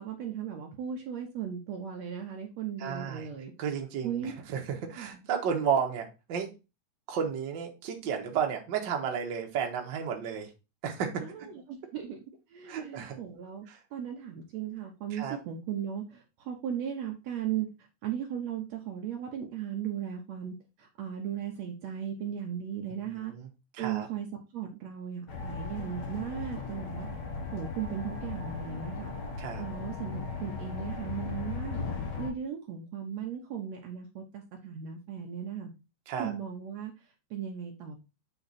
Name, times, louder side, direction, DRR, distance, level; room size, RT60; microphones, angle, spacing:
voice 1, 0.0-3.5 4.0-4.3 4.9-5.3 11.2-12.2 12.5-13.7 13.9-17.7 18.0-23.3 23.8-24.3 24.5-27.1 27.5-29.1 29.6-31.8 32.2-35.7 36.2-38.0, right 9 dB, 70° right, 2 dB, 1.8 m, -37 dB
voice 2, 2.8-3.3 3.6-6.5 7.1-10.5 10.8-11.5 12.7-13.2 13.7-13.8 15.1-15.4 23.1-23.5 23.7-24.1 29.4-29.6 36.1-36.3, right 7 dB, 55° right, 2 dB, 1.3 m, -32 dB
sound 1, 25.3-32.3, left 4 dB, 80° left, 0.9 m, -37 dB
7.9 x 3.5 x 4.1 m, 0.28 s
omnidirectional pair, 3.7 m